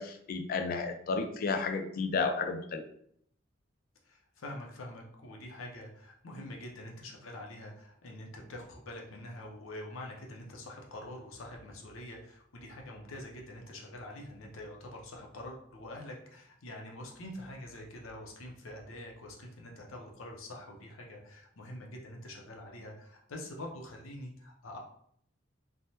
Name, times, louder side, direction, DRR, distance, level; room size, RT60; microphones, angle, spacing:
voice 1, 0.0-2.8, left 4 dB, 45° left, 7 dB, 0.3 m, -32 dB
voice 2, 4.0-24.8, left 1 dB, 90° left, 1 dB, 0.7 m, -45 dB
3.3 x 2.1 x 2.8 m, 0.66 s
head